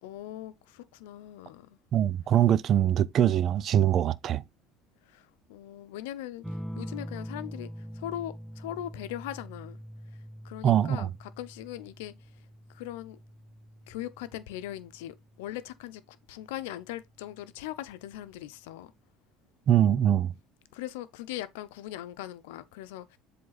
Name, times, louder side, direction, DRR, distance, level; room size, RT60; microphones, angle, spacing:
voice 1, 0.0-1.8 5.1-6.4 6.8-7.7 7.9-9.8 10.4-12.1 12.7-13.2 13.9-18.9 20.7-23.2, left 13 dB, 90° left, 0.7 m, -40 dB
voice 2, 1.9-4.4 10.6-11.1 19.7-20.3, right 10 dB, 45° right, 0.6 m, -23 dB
sound 1, 6.4-15.5 17.0-17.5, equal, 5° right, 0.7 m, -44 dB
7.7 x 3.4 x 4.0 m
supercardioid pair, 105°, 0 cm